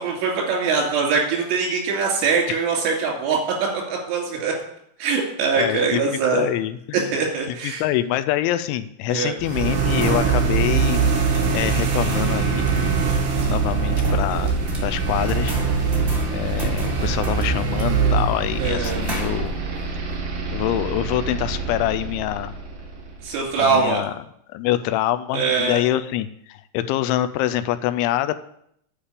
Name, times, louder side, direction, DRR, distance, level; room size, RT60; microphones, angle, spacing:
voice 1, 0.0-4.5 5.0-6.5 6.9-7.8 9.1-9.4 18.6-19.0 23.2-24.0 25.3-25.8, right 5 dB, 80° right, 0 dB, 5.2 m, -22 dB
voice 2, 5.6-6.0 6.3-7.2 7.6-12.7 13.3-14.5 14.8-15.5 16.3-19.6 20.5-22.5 23.6-24.1 24.5-28.4, left 13 dB, 85° left, 11 dB, 2.9 m, -25 dB
sound 1, 9.4-23.3, right 5 dB, 65° right, 3.8 m, -23 dB
sound 2, 10.0-19.9, right 1 dB, 30° right, 1.0 m, -36 dB
9.8 x 5.5 x 8.4 m, 0.72 s
omnidirectional pair, 5.5 m